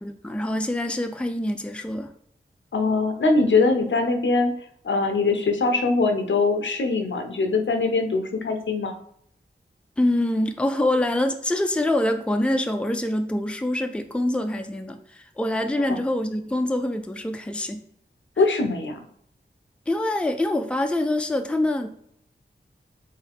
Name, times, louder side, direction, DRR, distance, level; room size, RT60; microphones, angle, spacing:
voice 1, 0.0-2.1 10.0-17.8 19.9-21.9, left 1 dB, 5° left, 6 dB, 0.4 m, -25 dB
voice 2, 2.7-4.5 4.8-8.9 15.9-16.0 18.4-19.0, left 3 dB, 75° left, 5 dB, 0.7 m, -22 dB
4.7 x 2.7 x 3.5 m, 0.69 s
wide cardioid pair, 50°, 19 cm